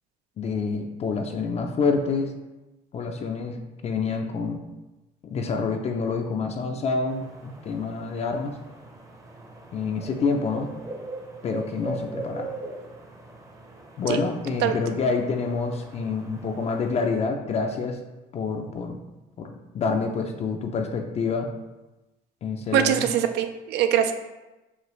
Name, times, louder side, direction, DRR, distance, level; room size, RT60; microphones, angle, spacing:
voice 1, 0.4-2.3 2.9-4.6 5.2-8.5 9.7-10.7 11.4-12.6 14.0-18.0 18.3-19.0 19.4-21.5 22.4-23.1, left 4 dB, 40° left, 4 dB, 0.4 m, -27 dB
sound 1, 7.1-17.2, right 2 dB, 20° right, 0.6 m, -40 dB
voice 2, 22.7-24.1, right 10 dB, 85° right, 8 dB, 0.4 m, -22 dB
4.9 x 2.6 x 3.0 m, 1.1 s
cardioid pair, 110°, 17 cm